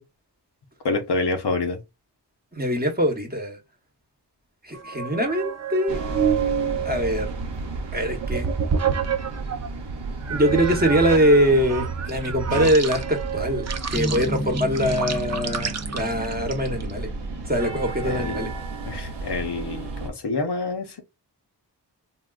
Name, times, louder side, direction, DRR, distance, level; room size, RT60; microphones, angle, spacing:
voice 1, 0.8-1.8 18.0-18.5 18.8-21.0, left 3 dB, 70° left, 0.8 m, -27 dB
voice 2, 2.6-3.6 4.6-6.0 6.8-7.3 7.9-8.5 10.3-17.1 17.4-18.5, equal, 20° right, 0.9 m, -23 dB
sound 1, 4.7-9.7 10.3-16.9, right 7 dB, 40° right, 0.5 m, -29 dB
sound 2, 5.9-20.1, right 3 dB, 75° right, 0.8 m, -33 dB
sound 3, 14.0-18.3, left 1 dB, 10° left, 0.6 m, -34 dB
3.6 x 2.3 x 2.3 m
wide cardioid pair, 55°, 42 cm